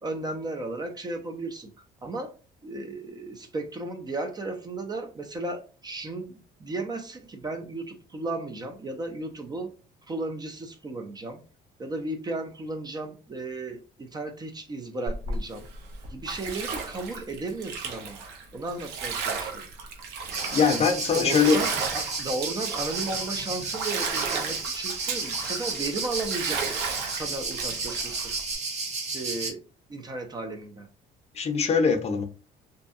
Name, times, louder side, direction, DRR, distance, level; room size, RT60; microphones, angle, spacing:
voice 1, 0.0-1.7 2.0-2.3 2.6-9.7 10.1-11.4 11.8-15.7 16.1-18.2 18.5-19.7 21.1-26.6 27.1-28.4 29.1-29.6 29.9-30.9, right 2 dB, 25° right, 0.4 m, -34 dB
Bathtub (filling or washing), 15.1-28.5, right 5 dB, 85° right, 0.6 m, -34 dB
sound 1, 20.3-29.5, right 4 dB, 40° right, 0.9 m, -32 dB
voice 2, 20.5-21.6 31.3-32.2, left 6 dB, 40° left, 0.6 m, -22 dB
2.6 x 2.2 x 2.6 m
cardioid pair, 110°, 17 cm